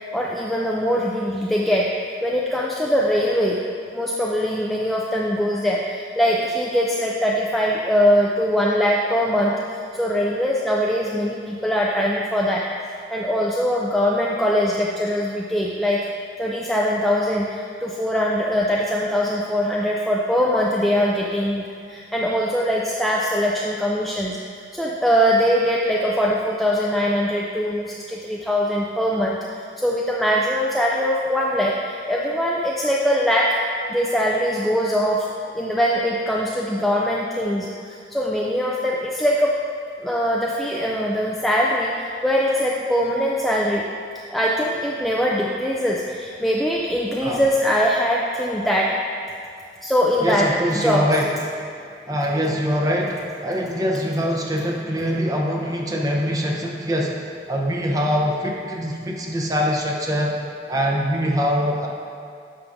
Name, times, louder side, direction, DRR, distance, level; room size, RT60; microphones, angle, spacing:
voice 1, 0.1-1.9 2.2-3.6 3.9-12.7 13.1-16.1 16.4-24.4 24.7-33.6 33.9-35.3 35.5-39.6 40.0-43.9 44.3-49.0 49.8-51.1, equal, ahead, -4 dB, 0.3 m, -22 dB
voice 2, 50.2-51.3 52.1-60.4 60.7-61.9, equal, 20° right, -1 dB, 0.7 m, -23 dB
9.1 x 6.0 x 2.6 m, 2.4 s
head